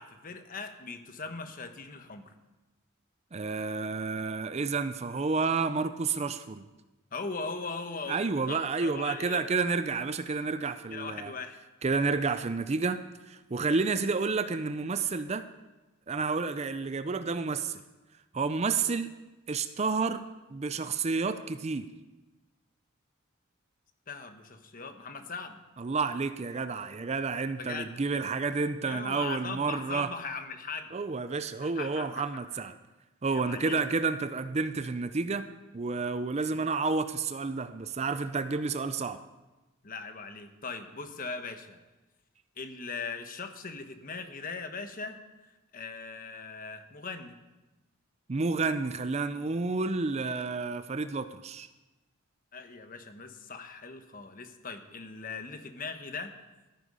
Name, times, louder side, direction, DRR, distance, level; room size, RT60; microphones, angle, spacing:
voice 1, 0.0-2.3 7.1-9.4 10.9-11.6 24.1-25.6 27.6-27.9 28.8-30.9 31.6-32.6 33.3-33.8 39.8-41.8 42.6-45.2 45.7-47.4 52.5-56.3, left 4 dB, 40° left, 7 dB, 1.1 m, -40 dB
voice 2, 3.3-6.6 8.1-11.3 11.8-13.0 13.3-15.4 16.1-17.8 18.3-19.1 19.5-20.2 20.5-21.9 25.8-30.1 30.9-32.8 33.2-35.5 35.7-39.2 48.3-51.7, right 4 dB, 30° right, 11 dB, 0.5 m, -30 dB
13.5 x 9.9 x 5.5 m, 1.1 s
head